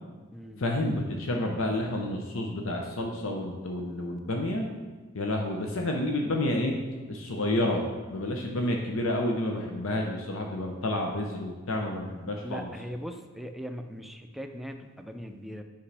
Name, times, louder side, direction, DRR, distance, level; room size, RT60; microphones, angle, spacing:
voice 1, 0.6-4.7 5.1-6.8 7.1-7.8 8.1-12.7, left 1 dB, 85° left, 1 dB, 0.8 m, -29 dB
voice 2, 12.4-15.6, equal, ahead, 5 dB, 0.3 m, -40 dB
8.4 x 5.2 x 3.4 m, 1.3 s
head